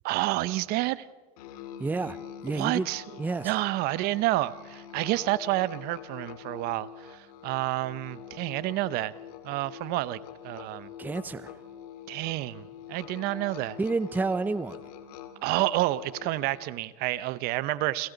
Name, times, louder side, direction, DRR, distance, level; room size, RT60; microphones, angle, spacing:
voice 1, 0.0-1.1 2.5-9.1 9.4-10.2 10.4-10.9 12.1-13.8 15.4-18.1, right 17 dB, 55° right, 17 dB, 0.9 m, -29 dB
Musical instrument, 1.4-16.9, left 9 dB, 75° left, 2.4 m, -45 dB
voice 2, 1.8-2.2 2.4-2.9 3.2-3.5 11.0-11.5 13.8-14.8, right 3 dB, 10° right, 14 dB, 0.6 m, -29 dB
30.0 x 22.5 x 4.0 m, 1.3 s
supercardioid pair, 115°, 19 cm